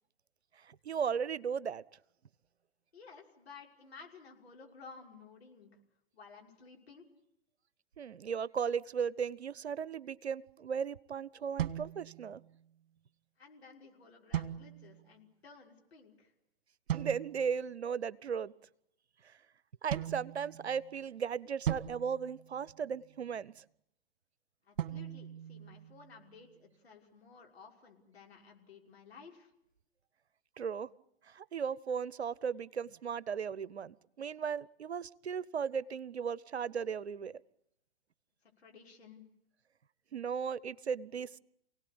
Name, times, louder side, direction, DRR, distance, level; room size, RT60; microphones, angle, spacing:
voice 1, 0.6-1.8 8.0-12.4 16.9-18.5 19.2-19.4 19.8-23.6 30.6-30.9 31.3-37.4 40.1-41.4, right 7 dB, 80° right, 0.9 m, -36 dB
voice 2, 2.9-5.7 6.1-7.1 13.4-16.3 24.6-29.5 38.4-39.2, left 5 dB, 70° left, 6.0 m, -55 dB
sound 1, 11.6-12.7 14.3-15.1 16.9-17.6 19.9-21.0 21.7-23.1 24.8-26.3, right 10 dB, 55° right, 1.7 m, -39 dB
28.0 x 18.0 x 8.8 m
figure-of-eight pair, 115°, 32 cm